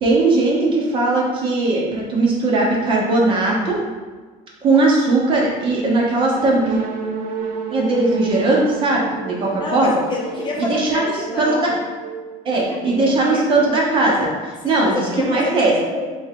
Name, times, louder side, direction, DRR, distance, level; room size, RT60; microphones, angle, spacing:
voice 1, 0.0-3.8 4.6-6.8 7.7-9.9 10.6-11.0 11.4-11.7 12.4-15.7, right 2 dB, 35° right, -2 dB, 0.9 m, -18 dB
sound 1, 6.3-14.0, right 4 dB, 70° right, 0.5 m, -32 dB
voice 2, 9.5-11.7 12.5-13.4 14.6-16.1, left 2 dB, 30° left, -2 dB, 0.7 m, -27 dB
3.6 x 3.4 x 3.6 m, 1.3 s
cardioid pair, 165°, 15 cm